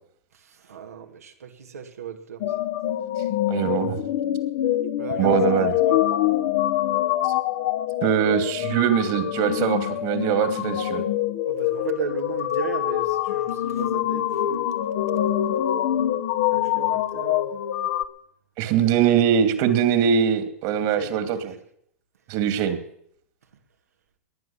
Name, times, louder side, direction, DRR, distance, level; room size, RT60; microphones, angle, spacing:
voice 1, 0.3-2.4 5.0-6.0 11.4-14.6 16.5-17.5 18.6-18.8 19.1-19.2 20.7-21.6, right 7 dB, 85° right, 2.4 m, -36 dB
sound 1, 2.4-18.0, left 12 dB, 60° left, 1.3 m, -25 dB
voice 2, 3.5-4.0 5.2-5.7 8.0-11.0 18.6-21.5 22.3-22.8, right 8 dB, 50° right, 2.6 m, -22 dB
20.5 x 9.5 x 7.2 m
hypercardioid pair, 110°, 8 cm